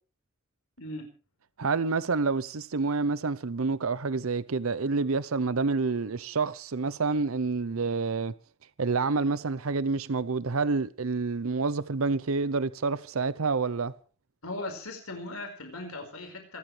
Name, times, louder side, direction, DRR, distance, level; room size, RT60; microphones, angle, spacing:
voice 1, 1.6-8.3 8.8-13.9, right 4 dB, 70° right, 0.7 m, -28 dB
voice 2, 14.4-16.6, left 2 dB, 90° left, 5.1 m, -38 dB
26.5 x 13.0 x 3.3 m
head